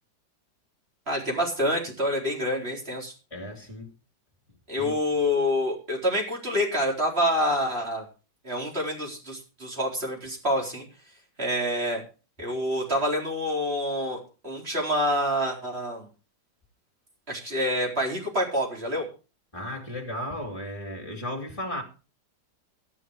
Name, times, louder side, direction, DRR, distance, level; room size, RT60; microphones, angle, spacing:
voice 1, 1.1-3.1 4.7-8.0 8.4-10.8 11.4-12.0 12.4-14.2 14.4-16.1 17.3-19.1, equal, 30° right, 4.4 m, -27 dB
voice 2, 3.3-3.9 4.8-5.0 19.5-21.8, left 1 dB, 15° left, 3.0 m, -35 dB
13.0 x 10.5 x 4.8 m
omnidirectional pair, 2.0 m